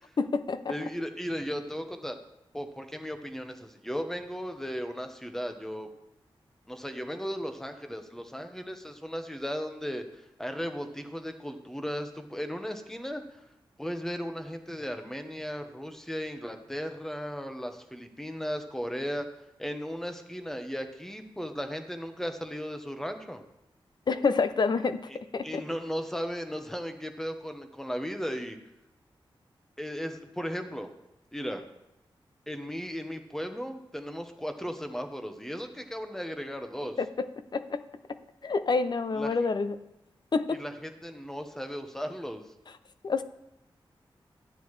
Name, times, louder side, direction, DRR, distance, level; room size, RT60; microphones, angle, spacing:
voice 1, 0.2-0.7 24.1-25.6 37.0-37.3 37.5-37.8 38.4-39.8 40.3-40.6 43.0-43.2, left 4 dB, 50° left, 12 dB, 0.5 m, -28 dB
voice 2, 0.7-2.2 2.5-5.9 6.7-10.0 10.4-13.2 13.8-19.3 19.6-23.4 25.1-25.2 25.4-28.6 29.8-30.9 31.3-31.6 32.5-37.0 39.1-39.4 40.5-42.4, equal, 5° left, 6 dB, 0.9 m, -36 dB
12.0 x 9.0 x 3.2 m, 0.86 s
wide cardioid pair, 105°, 9 cm